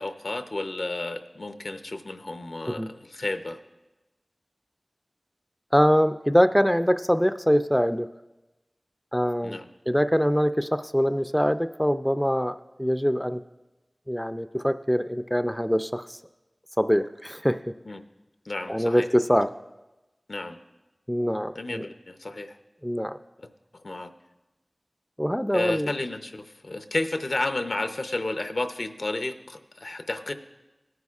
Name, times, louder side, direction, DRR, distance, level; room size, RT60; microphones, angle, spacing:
voice 1, 0.0-3.6 9.4-9.7 17.9-18.0 18.5-19.1 20.3-20.6 21.6-22.6 23.4-23.5 23.8-24.1 25.5-30.3, left 2 dB, 70° left, 8 dB, 0.6 m, -32 dB
voice 2, 5.7-8.1 9.1-9.6 9.9-13.4 14.1-16.2 16.8-17.7 18.7-19.5 21.1-21.8 22.8-23.2 25.2-25.9, equal, 5° left, 10 dB, 0.3 m, -23 dB
17.5 x 9.4 x 2.4 m, 1.0 s
wide cardioid pair, 50°, 0 cm